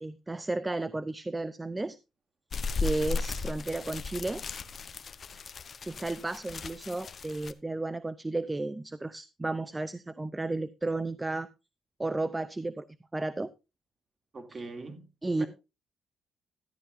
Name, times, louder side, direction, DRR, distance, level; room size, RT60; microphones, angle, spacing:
voice 1, 0.0-2.0 2.8-4.4 5.8-11.5 12.0-12.9 13.1-13.5 14.5-14.6 15.2-15.5, right 2 dB, 15° right, 0.5 m, -33 dB
sound 1, 2.5-7.5, left 4 dB, 45° left, 0.9 m, -36 dB
voice 2, 14.3-15.1 15.4-15.5, right 3 dB, 35° right, 2.6 m, -41 dB
13.0 x 11.0 x 2.6 m
cardioid pair, 90°, 0 cm